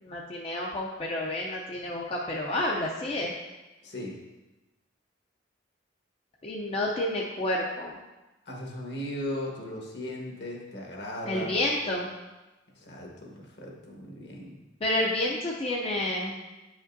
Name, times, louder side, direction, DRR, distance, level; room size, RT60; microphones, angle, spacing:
voice 1, 0.0-3.3 6.4-8.0 11.3-12.1 14.8-16.4, left 1 dB, 30° left, -2 dB, 0.5 m, -29 dB
voice 2, 3.8-4.2 8.5-11.7 12.7-14.6, left 1 dB, 60° left, -1 dB, 1.3 m, -37 dB
8.3 x 5.1 x 2.6 m, 1.1 s
head